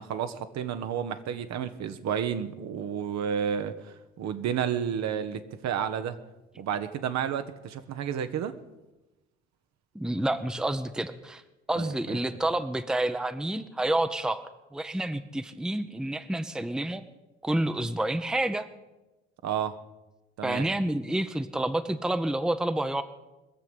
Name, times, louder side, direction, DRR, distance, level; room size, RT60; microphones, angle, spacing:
voice 1, 0.0-6.2 6.6-8.5 11.8-12.2 19.4-19.7 20.4-20.7, right 8 dB, 50° right, 9 dB, 1.1 m, -31 dB
voice 2, 9.9-11.4 11.7-17.0 17.4-18.7 20.4-23.0, right 1 dB, ahead, 10 dB, 0.8 m, -29 dB
21.5 x 7.3 x 7.9 m, 1.0 s
hypercardioid pair, 55°, 34 cm